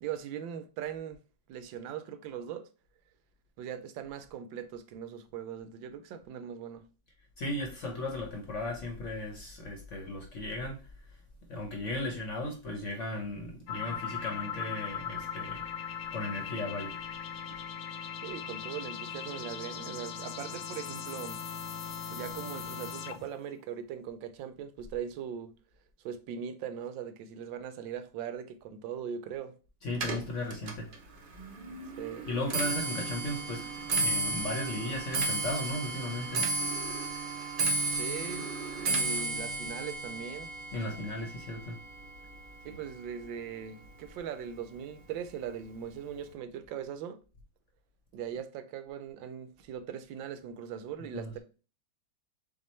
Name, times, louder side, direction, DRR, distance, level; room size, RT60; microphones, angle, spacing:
voice 1, 0.0-1.2 1.5-2.7 3.6-6.8 18.2-21.4 22.1-25.5 26.0-29.5 32.0-32.3 37.9-38.5 38.8-40.5 42.6-47.2 48.1-51.4, right 8 dB, 80° right, 1.3 m, -40 dB
voice 2, 7.4-10.9 11.5-15.7 16.1-16.9 29.8-30.9 32.2-33.7 33.9-36.5 40.7-41.8 51.0-51.4, left 1 dB, 50° left, 1.0 m, -36 dB
sound 1, 13.7-23.4, left 7 dB, 75° left, 0.8 m, -39 dB
Clock, 29.9-43.3 43.6-44.1 44.9-45.0 45.3-45.7 45.9-46.0, right 3 dB, 50° right, 0.6 m, -34 dB
7.2 x 2.4 x 3.1 m
omnidirectional pair, 2.1 m